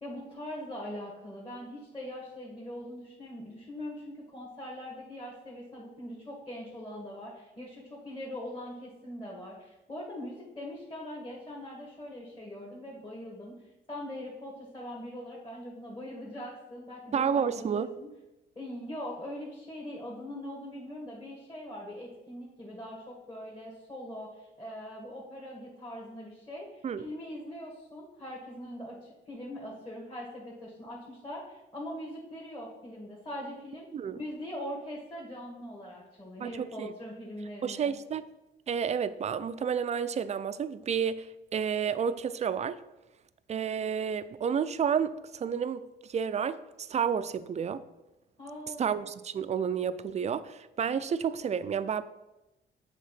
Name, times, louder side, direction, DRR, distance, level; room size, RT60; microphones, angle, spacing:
voice 1, 0.0-13.6 13.9-18.1 18.6-33.9 34.1-37.9 48.4-48.9, left 1 dB, 25° left, 1.9 m, -42 dB
voice 2, 17.1-17.9 26.8-27.1 33.9-34.2 36.4-36.9 37.6-38.3 38.7-42.8 43.5-45.8 46.1-47.8 48.8-52.0, right 7 dB, 35° right, 0.4 m, -30 dB
7.4 x 3.6 x 5.8 m
cardioid pair, 90°, 20 cm